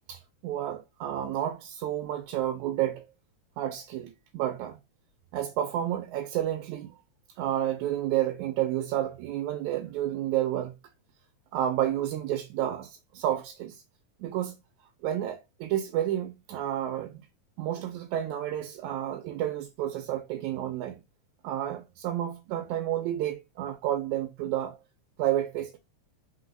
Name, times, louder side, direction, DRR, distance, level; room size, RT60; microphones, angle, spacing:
voice 1, 0.1-3.1 3.6-4.8 5.3-6.9 7.4-10.7 11.5-13.8 14.2-14.6 15.0-17.3 17.6-21.0 21.4-24.8 25.2-25.8, right 12 dB, 85° right, 1.9 m, -30 dB
4.3 x 3.9 x 2.5 m
omnidirectional pair, 3.4 m